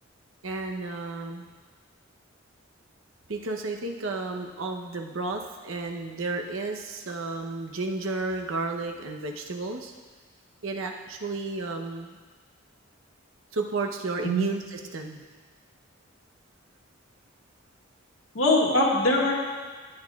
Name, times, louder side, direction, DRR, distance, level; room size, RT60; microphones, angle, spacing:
voice 1, 0.4-1.5 3.3-9.9 10.6-12.2 13.5-15.3, right 3 dB, 85° right, 2 dB, 0.9 m, -32 dB
voice 2, 18.3-19.3, left 1 dB, 80° left, -2 dB, 1.8 m, -22 dB
14.5 x 8.8 x 2.4 m, 1.4 s
head